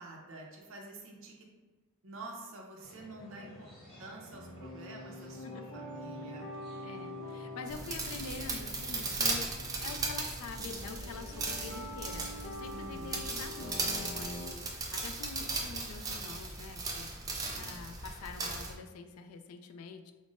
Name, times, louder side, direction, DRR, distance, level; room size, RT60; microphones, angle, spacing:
voice 1, 0.0-1.3 2.0-6.5 12.7-13.2, right 2 dB, 60° right, 0 dB, 0.6 m, -48 dB
sound 1, 2.8-9.6, equal, 5° left, 1.2 m, -54 dB
voice 2, 3.2-3.6 5.5-5.6 6.8-9.5 9.8-20.1, left 4 dB, 85° left, 7 dB, 0.3 m, -46 dB
sound 2, 4.3-14.5, left 1 dB, 40° left, 0.7 m, -45 dB
sound 3, 7.7-18.7, right 3 dB, 15° right, 0.4 m, -37 dB
5.1 x 2.0 x 2.5 m, 1.3 s
head